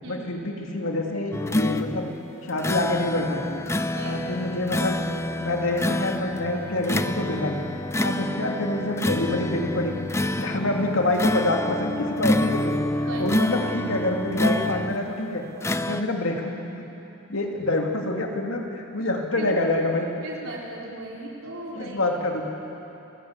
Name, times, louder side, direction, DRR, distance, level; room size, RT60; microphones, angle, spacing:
voice 1, 0.1-2.1 2.4-3.7 4.0-5.0 5.4-7.6 8.0-10.1 10.4-15.4 15.8-16.9 17.3-20.1 21.8-22.5, left 2 dB, 70° left, 1 dB, 2.7 m, -26 dB
sound 1, 1.3-15.1 15.6-16.0, left 1 dB, 10° left, 0.5 m, -27 dB
voice 2, 3.9-4.2 8.0-8.2 10.5-10.6 13.1-13.3 15.9-16.0 19.4-19.5 20.2-22.0, right 2 dB, 75° right, -3 dB, 4.4 m, -37 dB
29.0 x 14.5 x 8.3 m, 2.9 s
head